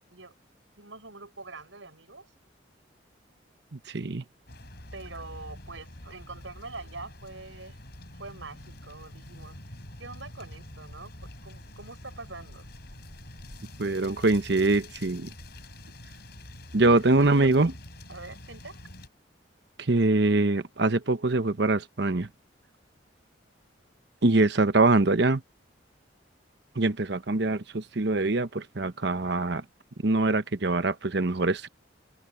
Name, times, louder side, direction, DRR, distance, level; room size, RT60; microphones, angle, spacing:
voice 1, 0.8-2.3 4.9-7.8 8.1-9.6 10.0-11.1 11.4-12.7 17.2-17.5 18.1-18.8, right 3 dB, 85° right, 6.9 m, -44 dB
voice 2, 3.7-4.2 13.8-15.3 16.7-17.7 19.8-22.3 24.2-25.4 26.7-29.6 30.0-31.7, right 2 dB, 60° right, 1.0 m, -24 dB
sound 1, 4.5-19.1, left 1 dB, 55° left, 6.4 m, -46 dB
open air
head